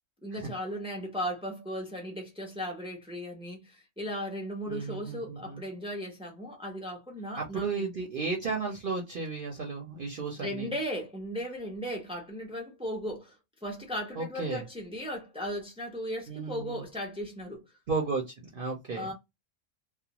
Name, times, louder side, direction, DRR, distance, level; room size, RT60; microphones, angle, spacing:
voice 1, 0.2-7.9 10.4-13.3 13.6-17.6 18.9-19.1, equal, 10° right, 0.4 m, -36 dB
voice 2, 4.7-5.6 7.4-10.7 14.2-14.6 16.3-16.8 17.9-19.1, right 4 dB, 50° right, 0.7 m, -34 dB
2.4 x 2.1 x 2.8 m
omnidirectional pair, 1.4 m